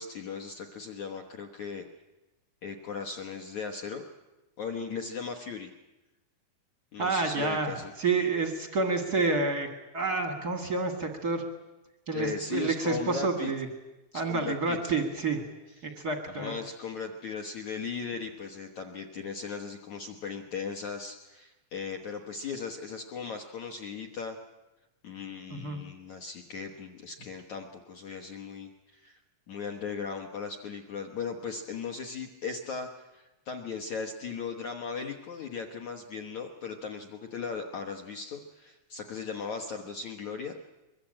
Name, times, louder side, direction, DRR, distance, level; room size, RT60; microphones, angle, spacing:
voice 1, 0.0-1.9 2.6-4.0 4.6-5.7 6.9-7.9 12.1-13.5 14.1-15.0 15.7-15.9 16.3-24.4 25.0-29.2 29.5-40.7, left 5 dB, 70° left, 3 dB, 1.7 m, -38 dB
voice 2, 7.0-7.7 8.0-9.7 9.9-11.4 12.1-13.7 14.1-15.4 15.8-16.5 25.5-25.8, right 3 dB, 75° right, 5 dB, 0.9 m, -29 dB
23.0 x 22.5 x 8.9 m, 1.0 s
omnidirectional pair, 5.2 m